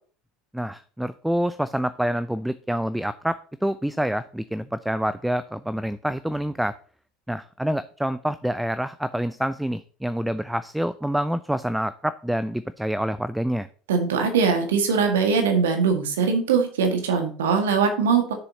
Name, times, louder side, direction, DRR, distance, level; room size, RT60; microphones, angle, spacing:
voice 1, 0.5-6.8 7.3-13.7, equal, 5° right, 15 dB, 0.4 m, -27 dB
voice 2, 13.9-18.3, right 5 dB, 70° right, 5 dB, 1.7 m, -21 dB
11.5 x 6.9 x 2.8 m, 0.43 s
figure-of-eight pair, 70°, 0 cm